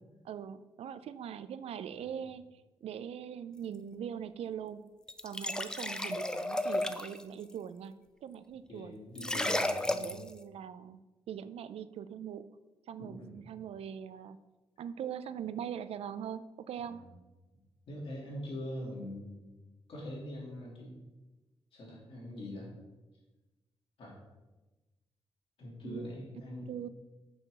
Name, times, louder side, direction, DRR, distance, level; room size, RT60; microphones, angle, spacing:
voice 1, 0.2-4.8 5.2-7.9 8.2-9.0 9.3-12.5 12.9-14.4 14.8-17.0 25.8-26.1 26.7-26.9, right 8 dB, 75° right, 14 dB, 0.4 m, -42 dB
sound 1, 5.1-7.2 9.2-10.3, left 1 dB, 5° left, 0.4 m, -33 dB
voice 2, 8.7-10.1 13.0-13.4 16.8-17.0 17.9-19.4 19.9-21.0 21.7-22.7 24.0-24.2 25.6-26.8, left 1 dB, 65° left, -3 dB, 2.9 m, -43 dB
6.3 x 4.6 x 6.5 m, 1.1 s
wide cardioid pair, 145°, 10 cm